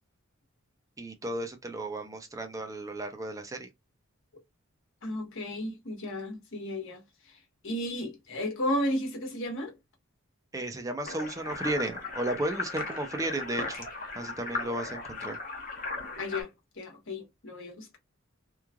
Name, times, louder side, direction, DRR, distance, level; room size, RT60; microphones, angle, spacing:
voice 1, 1.0-3.7 10.5-13.9 14.2-15.4, right 1 dB, 15° right, 0.5 m, -34 dB
voice 2, 5.0-7.0 7.3-7.4 7.6-9.7 16.2-16.5 16.8-18.0, left 1 dB, 65° left, 1.2 m, -33 dB
sound 1, 11.0-16.4, left 3 dB, 40° left, 0.9 m, -37 dB
3.1 x 2.3 x 2.2 m
head